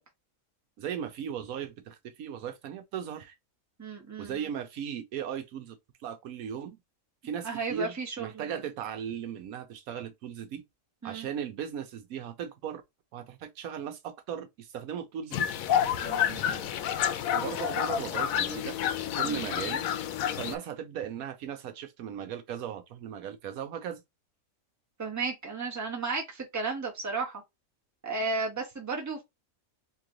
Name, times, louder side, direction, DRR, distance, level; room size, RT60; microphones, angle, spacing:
voice 1, 0.8-3.3 4.2-5.8 6.0-6.8 7.2-10.6 11.0-12.8 13.1-15.5 17.3-18.8 19.2-19.8 20.4-24.0, right 8 dB, 80° right, 1.1 m, -37 dB
voice 2, 3.8-4.4 7.4-8.6 11.0-11.3 16.0-16.7 19.2-19.5 25.0-27.4 28.0-29.2, right 3 dB, 15° right, 1.0 m, -34 dB
sound 1, 15.3-20.5, left 9 dB, 75° left, 1.0 m, -29 dB
3.2 x 2.9 x 3.7 m
omnidirectional pair, 1.5 m